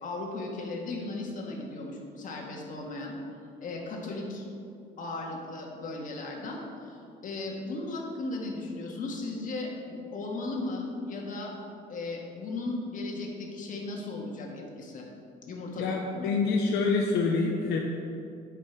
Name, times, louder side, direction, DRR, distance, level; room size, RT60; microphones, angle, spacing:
voice 1, 0.0-3.2 3.6-4.4 5.0-11.5 11.9-15.1 15.5-16.4, left 2 dB, 50° left, 0 dB, 1.7 m, -36 dB
voice 2, 15.8-17.8, left 4 dB, 80° left, 0 dB, 0.8 m, -26 dB
8.7 x 5.2 x 6.0 m, 2.5 s
cardioid pair, 110°, 17 cm